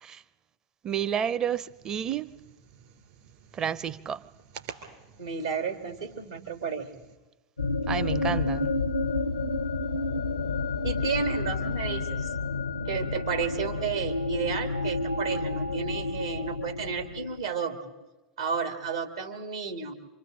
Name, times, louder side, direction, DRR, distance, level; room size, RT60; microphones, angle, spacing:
voice 1, 0.8-2.3 3.5-4.2 7.9-8.7, right 8 dB, 30° right, 0.6 m, -30 dB
sound 1, 1.7-7.2, right 8 dB, 60° right, 3.0 m, -50 dB
voice 2, 5.2-6.9 10.8-12.3 12.9-18.0 18.4-19.9, right 6 dB, 80° right, 2.1 m, -32 dB
sound 2, 7.6-17.4, left 3 dB, 85° left, 0.6 m, -30 dB
27.0 x 25.5 x 3.8 m
figure-of-eight pair, 85°, 2 cm